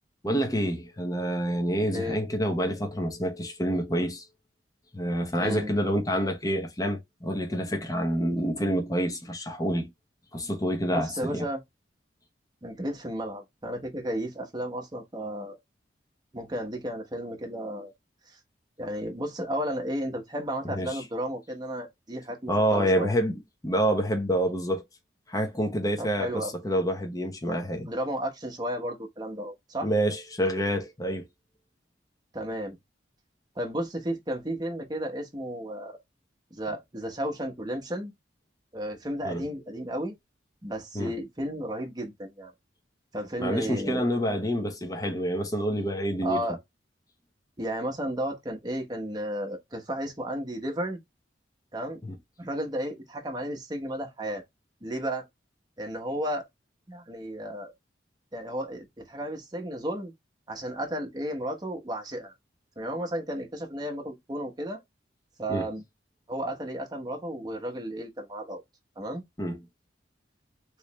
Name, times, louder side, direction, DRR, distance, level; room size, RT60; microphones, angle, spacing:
voice 1, 0.2-4.2 4.9-9.9 10.3-11.5 20.7-21.0 22.5-24.8 25.3-27.9 29.8-31.3 39.2-39.5 40.9-41.1 43.4-46.4 52.0-52.2 65.5-65.7 69.4-69.6, equal, 20° left, 0.7 m, -27 dB
voice 2, 5.4-5.7 10.9-11.6 12.6-15.6 16.3-17.9 18.3-18.4 18.8-23.1 26.0-26.5 27.9-29.9 32.3-32.8 33.6-36.0 36.5-38.1 38.7-40.1 40.6-42.5 43.1-44.0 46.2-46.6 47.6-51.0 51.7-52.0 52.4-54.4 54.8-55.3 55.8-56.5 56.9-57.7 58.3-60.1 60.5-62.3 62.8-64.8 65.4-65.8 66.3-68.6 69.0-69.2, equal, 25° right, 1.0 m, -33 dB
3.2 x 3.1 x 3.0 m
head